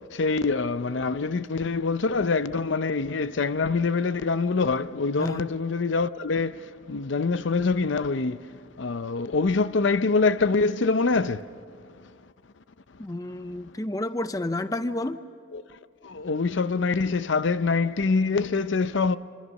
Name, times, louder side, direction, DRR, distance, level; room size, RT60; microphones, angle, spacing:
voice 1, 0.1-8.4 8.8-11.4 15.5-15.6 16.0-19.2, left 4 dB, 75° left, 0.6 m, -25 dB
voice 2, 13.0-15.2, left 1 dB, 20° left, 0.5 m, -30 dB
25.5 x 25.0 x 6.5 m
head